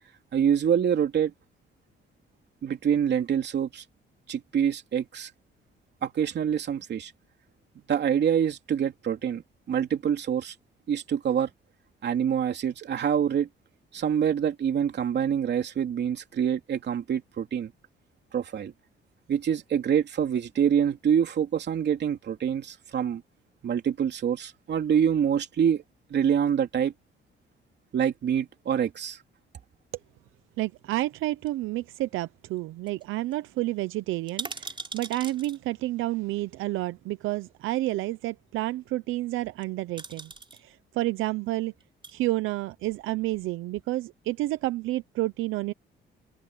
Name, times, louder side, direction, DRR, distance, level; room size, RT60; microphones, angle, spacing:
voice 1, 0.3-1.3 2.6-3.8 4.3-5.3 6.0-7.1 7.9-9.4 9.7-10.5 10.9-11.5 12.0-13.5 13.9-17.7 18.3-18.7 19.3-23.2 23.6-25.8 26.1-26.9 27.9-29.2, right 8 dB, 60° right, 3.0 m, -26 dB
voice 2, 30.6-40.3 40.6-41.7 42.1-45.7, right 17 dB, 90° right, 0.7 m, -30 dB
sound 1, 31.5-32.3 32.6-32.7 32.9-33.0 33.3-33.4 34.1-35.6 36.8-36.9 39.4-39.6 40.0-40.6 41.8-42.1 42.8-43.5 43.8-43.9, right 3 dB, 25° right, 3.5 m, -40 dB
cardioid pair, 90°, 20 cm